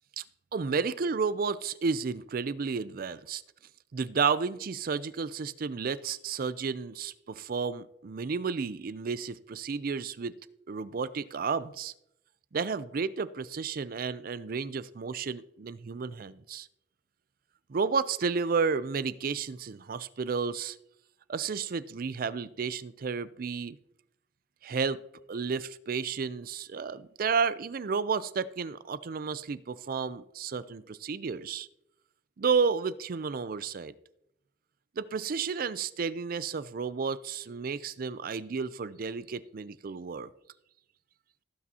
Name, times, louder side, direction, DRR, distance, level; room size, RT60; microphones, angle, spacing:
voice 1, 0.5-3.4 3.9-10.3 10.7-11.9 12.5-16.7 17.7-20.8 21.3-23.8 24.6-25.0 25.3-31.7 32.4-33.9 35.0-40.3, right 5 dB, 55° right, 16 dB, 0.4 m, -32 dB
16.5 x 8.6 x 2.8 m, 0.83 s
head